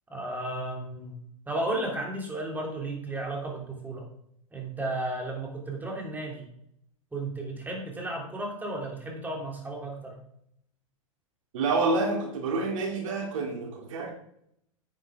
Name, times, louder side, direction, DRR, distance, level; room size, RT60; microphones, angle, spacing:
voice 1, 0.1-1.2 1.5-4.1 4.5-6.5 7.1-10.2, right 2 dB, 10° right, 0 dB, 3.1 m, -34 dB
voice 2, 11.5-14.1, right 3 dB, 65° right, 2 dB, 2.7 m, -28 dB
9.8 x 9.0 x 3.6 m, 0.71 s
hypercardioid pair, 105°, 18 cm